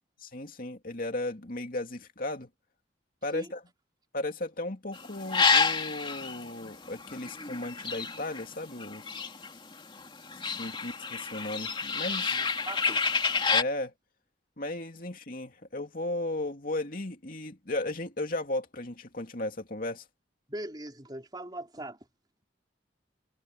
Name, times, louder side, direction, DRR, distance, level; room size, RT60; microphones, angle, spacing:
voice 1, 0.2-2.5 3.2-3.6 4.1-9.2 10.6-12.4 13.5-13.9 14.6-20.0, left 2 dB, 50° left, 2.7 m, -35 dB
sound 1, 4.9-9.7 10.0-13.6, left 5 dB, 25° left, 2.9 m, -29 dB
voice 2, 12.3-13.0 20.5-22.0, right 1 dB, 20° right, 3.8 m, -40 dB
head